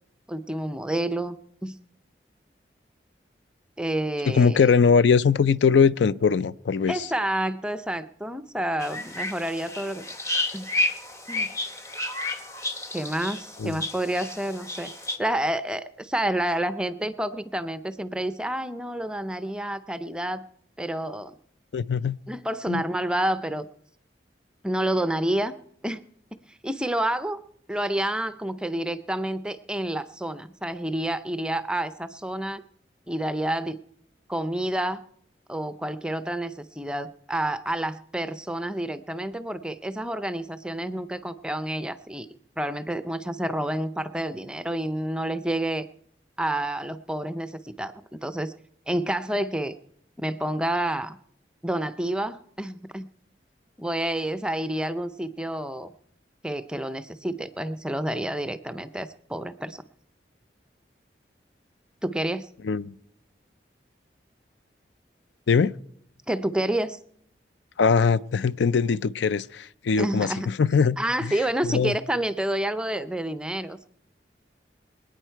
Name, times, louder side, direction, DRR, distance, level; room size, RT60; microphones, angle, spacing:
voice 1, 0.3-1.4 1.6-1.8 3.8-4.6 6.9-10.0 10.5-10.7 11.3-11.5 12.9-14.9 15.2-20.4 20.8-21.3 22.3-23.7 24.6-25.5 25.8-26.0 26.5-27.4 27.7-32.6 33.1-33.8 34.3-35.0 35.5-42.3 42.6-45.8 46.4-47.9 48.2-48.5 48.9-49.8 50.2-51.2 51.6-53.1 53.8-55.9 56.4-59.8 62.0-62.5 66.3-67.0 70.0-70.5 71.0-73.9, right 1 dB, 5° right, 0.4 m, -29 dB
voice 2, 4.3-7.1 13.6-13.8 21.7-22.2 22.7-22.8 62.6-62.9 65.5-65.7 67.8-71.0 71.2-71.3 71.6-71.9, left 5 dB, 80° left, 0.4 m, -21 dB
sound 1, 8.8-15.2, left 2 dB, 15° left, 0.9 m, -31 dB
25.0 x 9.0 x 4.5 m
head